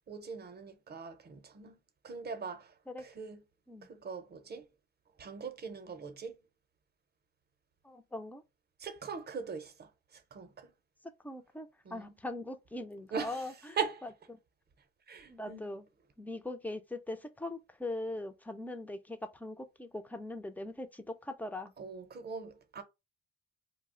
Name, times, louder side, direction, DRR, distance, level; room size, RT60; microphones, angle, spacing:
voice 1, 0.1-1.8 2.0-2.7 3.0-3.4 3.9-4.6 5.2-6.4 8.8-10.7 11.8-12.1 13.1-13.4 13.8-14.0 15.1-15.7 21.8-22.8, right 6 dB, 35° right, 0.6 m, -41 dB
voice 2, 7.8-8.4 11.2-13.8 14.3-14.4 15.3-15.9 16.2-21.7, left 2 dB, 5° left, 0.4 m, -41 dB
2.4 x 2.0 x 3.6 m
cardioid pair, 90°, 30 cm